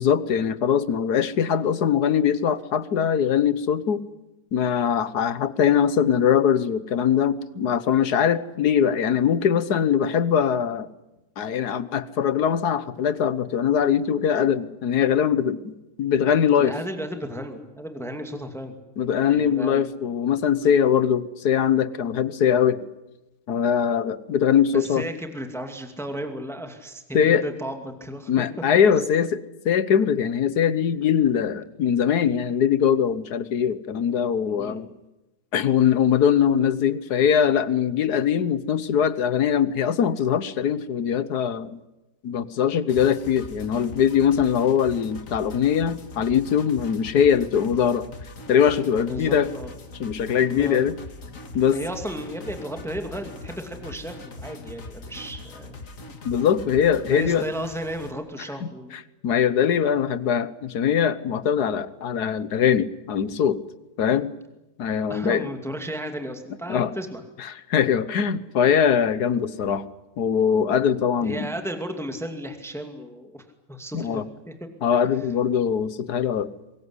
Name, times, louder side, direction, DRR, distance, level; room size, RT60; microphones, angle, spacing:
voice 1, 0.0-4.0 4.5-10.9 11.4-15.7 16.0-16.7 19.0-22.9 23.5-25.1 27.1-27.4 28.3-34.9 35.5-41.8 42.2-48.1 48.5-49.5 50.0-51.0 51.5-51.8 56.3-57.5 59.2-63.6 64.0-64.4 64.8-65.5 66.7-66.9 67.7-69.9 70.2-71.5 73.9-74.3 74.8-76.5, left 8 dB, 75° left, 15 dB, 1.6 m, -22 dB
voice 2, 16.6-18.8 19.3-19.9 20.6-20.8 24.7-28.4 34.5-34.8 49.1-49.7 50.4-51.0 51.7-55.8 57.1-58.9 65.1-67.2 71.2-74.7, equal, ahead, 5 dB, 2.4 m, -34 dB
sound 1, 42.9-58.1, left 2 dB, 55° left, 2.3 m, -41 dB
24.0 x 21.0 x 9.7 m, 1.0 s
omnidirectional pair, 1.7 m